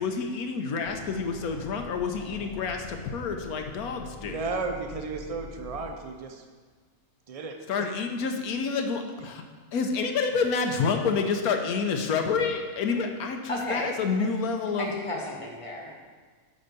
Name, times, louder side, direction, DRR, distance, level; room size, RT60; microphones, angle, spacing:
voice 1, 0.0-4.4 7.7-9.4 9.7-14.9, left 5 dB, 80° left, 4 dB, 1.2 m, -28 dB
sound 1, 0.8-5.9, left 3 dB, 45° left, 0.3 m, -44 dB
voice 2, 4.2-6.4 7.3-7.9, right 4 dB, 50° right, 4 dB, 0.4 m, -34 dB
voice 3, 13.5-13.9 14.2-14.3 14.8-16.0, left 1 dB, 25° left, -1 dB, 1.1 m, -33 dB
8.8 x 3.9 x 6.6 m, 1.5 s
omnidirectional pair, 1.5 m